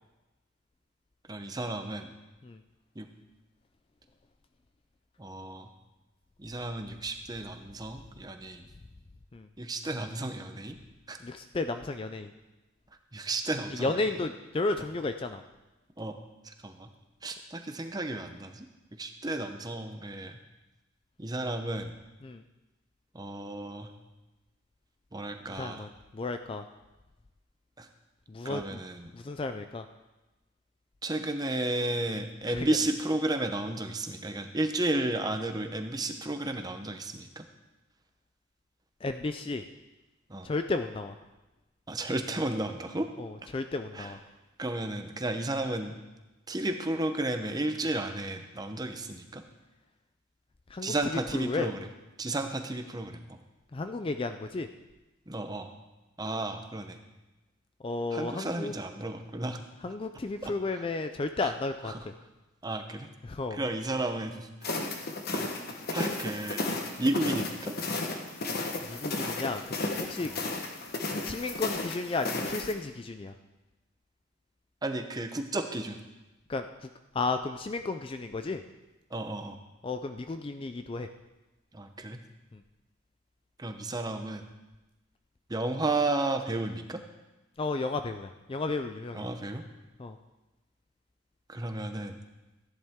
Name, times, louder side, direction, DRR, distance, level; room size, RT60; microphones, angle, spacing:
voice 1, 1.3-2.1 3.0-3.1 5.2-5.7 6.4-8.7 9.6-10.8 11.1-11.2 13.1-14.2 16.0-16.2 16.4-16.9 17.2-20.4 21.2-21.9 23.1-23.9 25.1-25.8 27.8-27.9 28.4-29.1 31.0-37.4 40.3-40.5 41.9-43.1 43.9-44.1 44.6-45.9 46.5-49.4 50.8-51.8 52.2-53.4 55.3-55.7 56.2-57.0 58.1-59.6 60.4-60.9 61.4-61.5 61.9-62.1 62.6-63.1 63.5-64.9 65.3-65.4 65.9-66.7 67.0-67.8 70.2-70.4 74.8-76.0 79.1-79.6 81.7-82.2 83.6-84.4 85.5-87.0 89.1-89.6 91.5-92.2, right 2 dB, 20° right, 6 dB, 0.7 m, -33 dB
voice 2, 11.2-12.3 13.7-15.4 22.2-22.4 25.6-26.6 28.3-28.8 29.1-29.8 32.5-32.7 39.0-39.6 40.4-41.1 43.2-44.2 50.7-51.7 53.7-54.7 57.8-58.7 59.8-62.1 63.2-63.6 68.8-69.6 70.0-70.3 71.2-73.3 76.5-76.9 77.1-78.6 79.8-81.1 82.5-82.6 87.6-89.3 90.0-90.2, left 3 dB, 25° left, 8 dB, 0.3 m, -33 dB
sound 1, 64.6-72.7, left 2 dB, 45° left, 1.1 m, -34 dB
14.0 x 10.5 x 3.6 m, 1.1 s
head